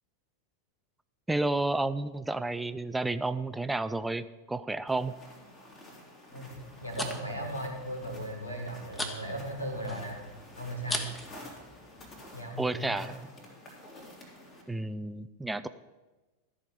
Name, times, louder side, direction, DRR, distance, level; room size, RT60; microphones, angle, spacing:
voice 1, 1.3-5.2 12.6-13.1 14.7-15.7, right 2 dB, 5° right, 13 dB, 0.4 m, -31 dB
sound 1, 4.9-14.6, left 1 dB, 30° left, 2.8 m, -51 dB
sound 2, 6.5-12.3, left 1 dB, 15° left, 1.3 m, -41 dB
voice 2, 6.8-10.2 10.6-11.1 12.3-13.0, right 1 dB, 85° left, 2 dB, 2.1 m, -37 dB
14.0 x 4.9 x 7.0 m, 1.2 s
figure-of-eight pair, 90°, 0 cm